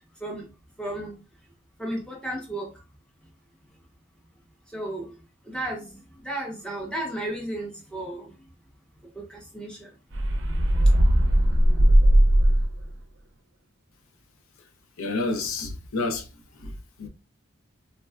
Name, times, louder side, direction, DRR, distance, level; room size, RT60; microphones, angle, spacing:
voice 1, 0.8-1.1 1.8-2.7 4.7-5.1 5.5-8.3 9.1-9.9, right 1 dB, 5° left, 0.6 m, -33 dB
sound 1, 10.1-12.9, right 1 dB, 60° right, 0.5 m, -18 dB
voice 2, 15.0-16.3 16.5-17.1, left 3 dB, 85° left, 0.6 m, -30 dB
3.5 x 2.2 x 2.2 m
head